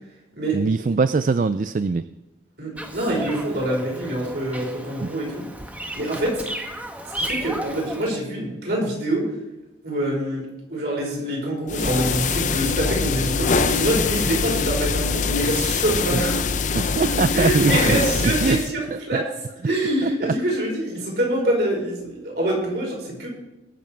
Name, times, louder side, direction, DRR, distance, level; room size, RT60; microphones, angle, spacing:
voice 1, 0.5-2.0 5.0-5.1 16.1-16.3 16.7-18.6 18.9-19.2 20.0-20.4, right 4 dB, 45° right, 13 dB, 0.3 m, -22 dB
voice 2, 2.6-5.4 5.9-6.4 7.0-9.3 9.8-10.4 10.7-16.4 17.3-19.2 19.6-23.3, right 1 dB, 65° right, -3 dB, 5.1 m, -25 dB
Bird vocalization bird call bird song, 2.8-8.1, right 1 dB, 10° right, 1.1 m, -34 dB
sound 1, 11.7-18.7, left 5 dB, 40° left, 0.5 m, -23 dB
20.5 x 7.2 x 4.6 m, 1.0 s
head